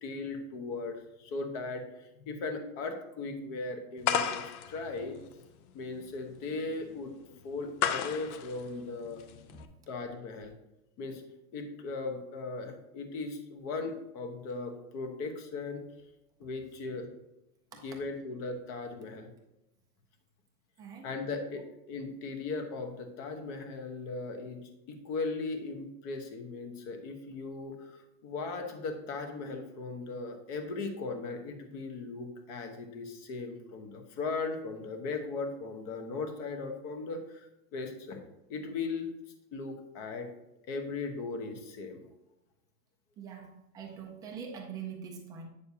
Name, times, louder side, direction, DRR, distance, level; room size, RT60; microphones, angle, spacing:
voice 1, 0.0-5.2 5.7-7.1 7.4-9.2 9.9-10.5 11.0-11.2 11.5-15.8 16.4-17.1 17.8-19.3 21.0-38.2 38.5-39.1 39.5-40.3 40.6-42.0, left 3 dB, 40° left, 5 dB, 1.1 m, -38 dB
sound 1, 4.0-9.7, left 8 dB, 70° left, 0.8 m, -34 dB
voice 2, 20.8-21.1 43.2-45.5, right 7 dB, 10° right, 0 dB, 0.4 m, -43 dB
8.2 x 6.6 x 2.8 m, 0.90 s
supercardioid pair, 155°, 44 cm